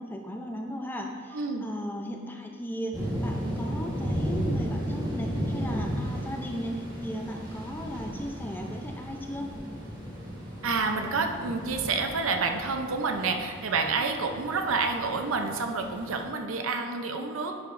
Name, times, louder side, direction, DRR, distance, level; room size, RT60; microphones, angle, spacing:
voice 1, 0.0-9.5, equal, 10° left, 2 dB, 0.5 m, -36 dB
voice 2, 1.3-1.6 10.6-17.5, right 4 dB, 80° right, 4 dB, 0.7 m, -29 dB
sound 1, 2.9-16.2, equal, 20° right, 1.3 m, -35 dB
10.5 x 4.8 x 2.6 m, 2.2 s
head